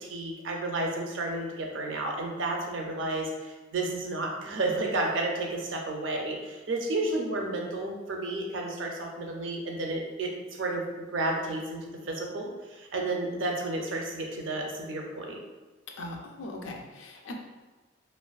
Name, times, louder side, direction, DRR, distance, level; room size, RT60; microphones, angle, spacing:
voice 1, 0.0-10.3 10.6-15.4, right 2 dB, 75° right, 1 dB, 0.5 m, -32 dB
voice 2, 16.0-17.3, left 2 dB, 80° left, 2 dB, 0.4 m, -40 dB
2.4 x 2.4 x 2.3 m, 1.3 s
head